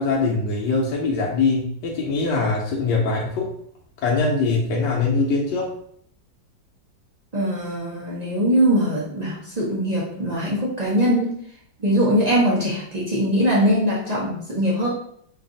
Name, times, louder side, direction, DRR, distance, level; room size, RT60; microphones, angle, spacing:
voice 1, 0.0-3.5 4.0-5.7, left 3 dB, 75° left, -2 dB, 1.2 m, -22 dB
voice 2, 7.3-11.3 11.8-14.9, equal, 75° right, -6 dB, 0.3 m, -21 dB
3.3 x 2.4 x 3.9 m, 0.65 s
omnidirectional pair, 2.0 m